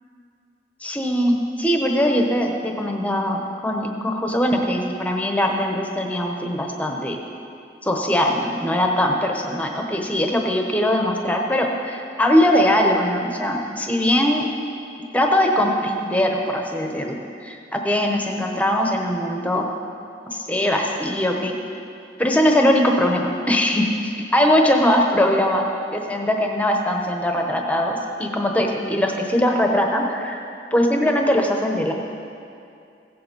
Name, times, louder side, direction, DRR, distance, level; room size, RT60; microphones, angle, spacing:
voice 1, 0.8-7.2 7.8-14.5 15.1-19.7 20.3-21.5 22.2-25.7 25.9-30.4 30.7-31.9, equal, 10° left, 1 dB, 1.0 m, -21 dB
16.0 x 7.7 x 5.4 m, 2.5 s
head